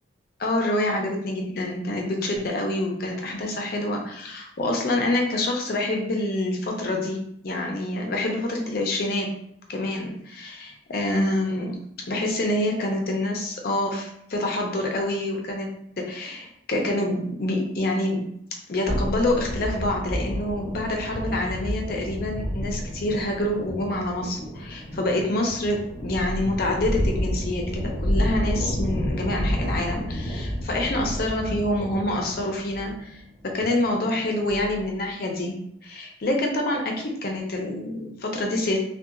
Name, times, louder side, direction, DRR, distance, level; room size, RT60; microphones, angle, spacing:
voice 1, 0.4-9.3 9.7-11.8 12.1-15.7 16.0-18.3 18.7-38.8, left 1 dB, 50° left, 1 dB, 0.5 m, -27 dB
sound 1, 18.9-35.0, equal, 15° left, 1.1 m, -30 dB
2.7 x 2.2 x 2.4 m, 0.71 s
head